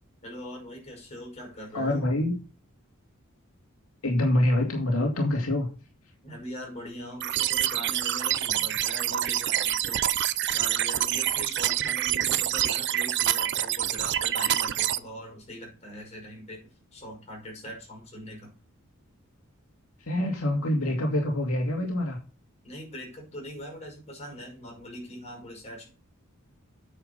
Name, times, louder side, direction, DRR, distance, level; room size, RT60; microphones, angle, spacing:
voice 1, 0.2-2.1 6.2-10.0 10.5-16.6 16.9-18.5 22.6-25.9, equal, 30° left, -1 dB, 5.7 m, -41 dB
voice 2, 1.7-2.3 4.0-5.7 20.0-22.2, left 1 dB, 80° left, 0 dB, 2.4 m, -25 dB
sound 1, 7.2-15.0, right 12 dB, 55° right, 0.6 m, -26 dB
9.0 x 7.4 x 5.4 m, 0.35 s
head